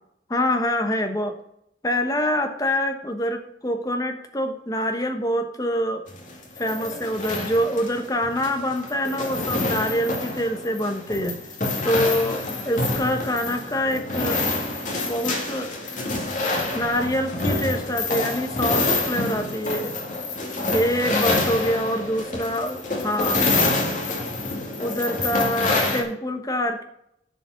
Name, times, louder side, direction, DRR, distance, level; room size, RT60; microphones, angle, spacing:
voice 1, 0.3-1.4 1.8-6.1 6.6-11.4 11.8-14.4 15.1-15.7 16.7-19.9 20.7-23.4 24.8-26.8, equal, 20° left, 5 dB, 1.1 m, -25 dB
sound 1, 6.1-26.0, left 2 dB, 40° left, 2.2 m, -27 dB
10.5 x 5.0 x 6.5 m, 0.75 s
head